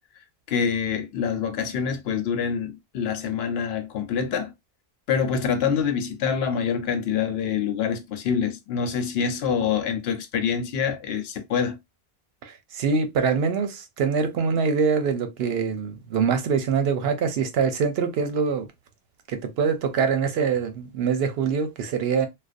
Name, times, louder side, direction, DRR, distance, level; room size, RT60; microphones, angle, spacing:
voice 1, 0.5-4.5 5.1-11.8, left 7 dB, 85° left, 0.8 m, -26 dB
voice 2, 12.4-18.7 19.3-22.3, right 6 dB, 80° right, 0.8 m, -24 dB
2.5 x 2.0 x 2.5 m
omnidirectional pair, 1.0 m